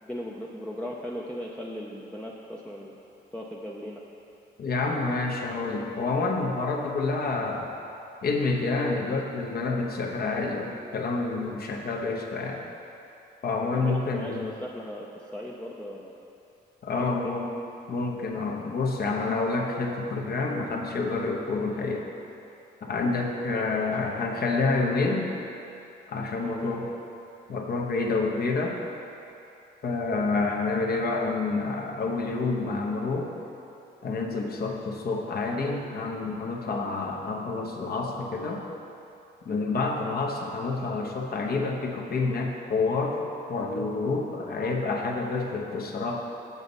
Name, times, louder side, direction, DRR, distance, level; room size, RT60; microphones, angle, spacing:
voice 1, 0.0-3.0 3.3-4.0 13.7-16.1 16.9-17.4 23.5-24.0 26.4-26.8, equal, 5° left, -3 dB, 0.5 m, -38 dB
voice 2, 4.6-7.7 8.2-12.6 13.4-14.5 16.8-17.5 17.9-22.1 22.8-25.3 26.1-26.9 27.5-28.8 29.8-33.3 34.0-38.6 39.4-43.2 43.5-46.2, left 3 dB, 50° left, 0 dB, 1.0 m, -28 dB
7.2 x 6.9 x 4.1 m, 2.9 s
cardioid pair, 90°, 20 cm